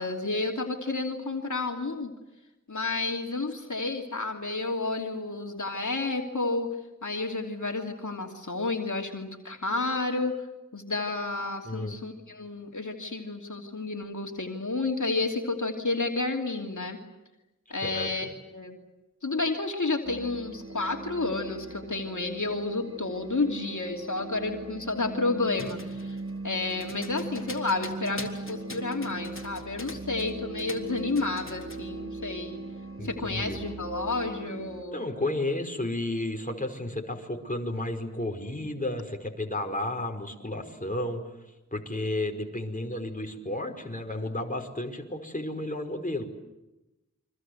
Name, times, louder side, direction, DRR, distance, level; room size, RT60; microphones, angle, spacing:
voice 1, 0.0-2.1 2.7-6.7 7.0-10.3 10.7-17.0 17.7-18.8 19.2-26.2 26.4-32.6 33.0-35.0, left 3 dB, 75° left, 2 dB, 2.9 m, -31 dB
voice 2, 11.6-12.0 17.8-18.3 33.0-33.6 34.9-41.2 41.7-46.2, left 1 dB, 25° left, 3 dB, 5.2 m, -32 dB
sound 1, 20.0-34.8, right 3 dB, 45° right, 1.8 m, -40 dB
sound 2, 25.5-30.3 30.6-31.9, left 2 dB, 45° left, 3.8 m, -43 dB
29.5 x 24.5 x 8.0 m, 0.98 s
wide cardioid pair, 50°, 30 cm